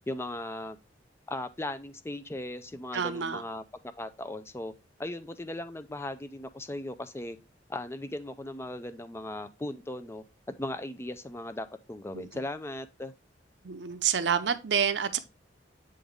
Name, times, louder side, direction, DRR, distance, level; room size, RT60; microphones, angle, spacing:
voice 1, 0.1-0.8 1.3-3.6 4.0-4.7 5.0-7.4 7.7-10.2 10.6-13.1, left 1 dB, 15° left, 0.4 m, -37 dB
voice 2, 2.9-3.4 12.1-12.3 13.6-15.2, right 7 dB, 75° right, 0.7 m, -28 dB
8.0 x 3.8 x 3.5 m
head